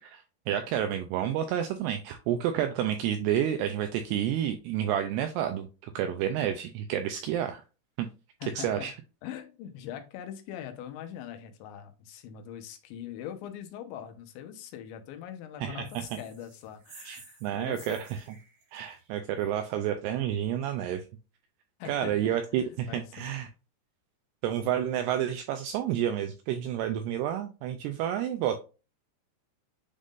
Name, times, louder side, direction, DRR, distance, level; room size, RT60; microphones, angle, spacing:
voice 1, 0.0-7.6 8.0-8.1 8.6-8.9 15.6-16.0 17.1-18.2 18.7-21.0 21.9-23.5 24.4-28.6, right 10 dB, 85° right, 7 dB, 2.4 m, -30 dB
voice 2, 8.4-8.9 9.2-18.0 21.8-23.3, left 10 dB, 90° left, 6 dB, 3.2 m, -42 dB
sound 1, 15.8-19.7, right 5 dB, 55° right, 3.3 m, -53 dB
10.0 x 3.7 x 2.5 m, 0.32 s
omnidirectional pair, 5.3 m